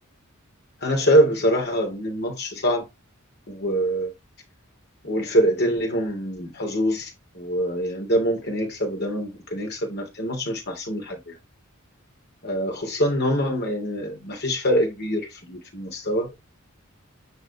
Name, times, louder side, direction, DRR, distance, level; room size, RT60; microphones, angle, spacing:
voice 1, 0.8-2.8 3.5-4.1 5.0-11.4 12.4-16.3, equal, 50° left, 3.1 m, -24 dB
9.9 x 4.0 x 3.1 m
head